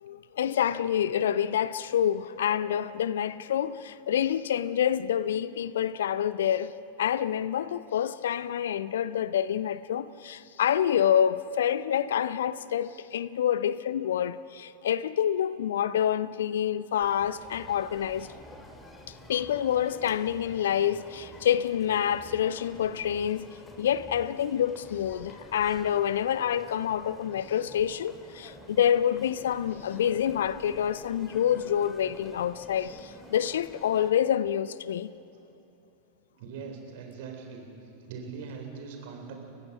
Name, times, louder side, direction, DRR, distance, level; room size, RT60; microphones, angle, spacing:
voice 1, 0.0-6.7 7.0-18.3 19.3-23.5 23.8-35.1, left 9 dB, 60° left, 0.5 m, -27 dB
sound 1, 17.0-34.1, left 1 dB, 15° left, 2.2 m, -49 dB
voice 2, 36.4-37.6 38.0-39.3, right 5 dB, 50° right, 3.8 m, -41 dB
30.0 x 15.0 x 6.1 m
figure-of-eight pair, 90°, 0 cm